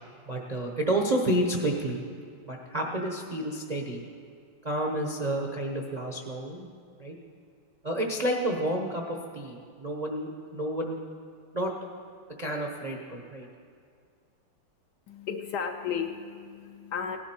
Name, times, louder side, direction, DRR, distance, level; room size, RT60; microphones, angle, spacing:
voice 1, 0.3-2.0 2.5-4.0 4.6-6.7 7.0-7.1 7.8-11.0 11.5-11.7 12.4-13.5, right 1 dB, 45° right, 0 dB, 0.5 m, -30 dB
voice 2, 15.1-17.2, left 7 dB, 70° left, 5 dB, 1.0 m, -34 dB
17.0 x 11.0 x 4.4 m, 2.3 s
omnidirectional pair, 2.2 m